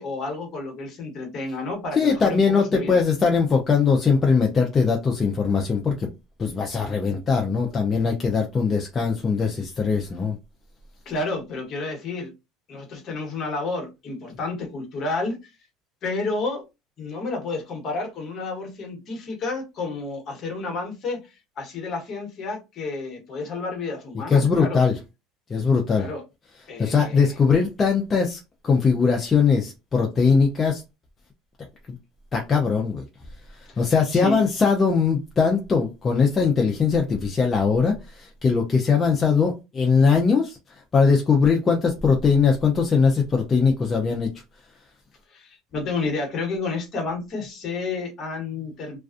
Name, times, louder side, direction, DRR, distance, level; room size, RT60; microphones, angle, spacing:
voice 1, 0.0-3.0 11.1-12.3 12.7-15.4 16.0-16.6 17.0-21.2 21.6-24.8 25.9-26.2 26.7-27.3 34.1-34.4 45.3-49.0, left 3 dB, 45° left, 1.0 m, -30 dB
voice 2, 1.9-6.1 6.4-10.4 24.3-25.0 25.5-26.1 26.8-30.8 32.3-33.0 33.5-44.3, left 5 dB, 25° left, 0.5 m, -21 dB
2.4 x 2.2 x 2.4 m
supercardioid pair, 115°, 0 cm